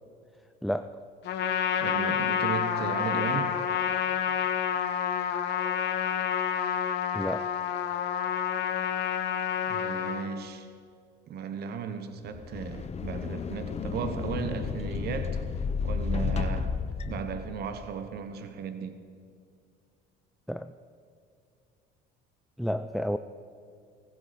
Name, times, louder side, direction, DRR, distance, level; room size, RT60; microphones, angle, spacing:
voice 1, 0.6-1.0 7.1-7.5 20.5-20.7 22.6-23.2, equal, ahead, 10 dB, 0.4 m, -31 dB
Trumpet, 1.2-10.3, left 8 dB, 60° left, 1.6 m, -29 dB
voice 2, 1.8-3.6 9.7-10.7 11.3-15.4 15.8-16.8 17.1-19.0, right 6 dB, 55° right, 9 dB, 1.1 m, -35 dB
sound 1, 12.3-17.9, left 5 dB, 35° left, 1.0 m, -32 dB
18.0 x 15.5 x 4.3 m, 2.4 s
supercardioid pair, 100°, 20 cm